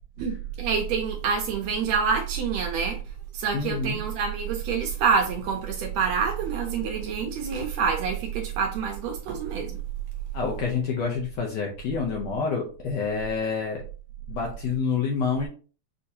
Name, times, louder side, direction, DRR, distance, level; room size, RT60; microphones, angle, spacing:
voice 1, 0.2-9.8, right 6 dB, 75° right, 1.8 m, -27 dB
voice 2, 3.5-4.0 10.3-13.8 14.3-15.5, left 5 dB, 70° left, 1.7 m, -28 dB
6.3 x 2.8 x 2.7 m
omnidirectional pair, 3.4 m